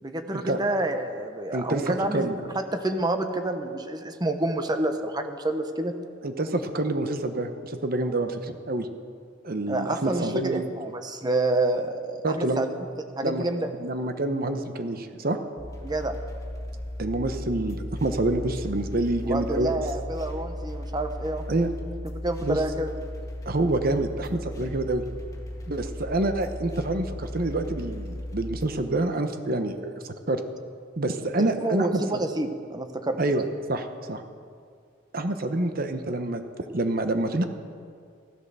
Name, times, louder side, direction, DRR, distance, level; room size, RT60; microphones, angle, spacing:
voice 1, 0.0-5.9 9.7-12.7 13.0-13.7 15.8-16.2 19.2-21.4 22.1-22.9 31.4-33.2, right 2 dB, 20° right, 7 dB, 1.0 m, -28 dB
voice 2, 1.5-2.3 6.2-8.9 9.4-10.7 12.2-12.6 13.2-13.4 13.8-15.4 17.0-19.8 21.5-21.7 22.4-22.6 23.5-25.0 25.7-30.4 31.0-32.2 33.2-34.2 35.1-36.4 36.7-37.4, right 2 dB, 50° right, 8 dB, 1.0 m, -27 dB
sound 1, 15.6-28.7, left 1 dB, 15° left, 1.9 m, -36 dB
15.0 x 12.0 x 6.8 m, 2.2 s
head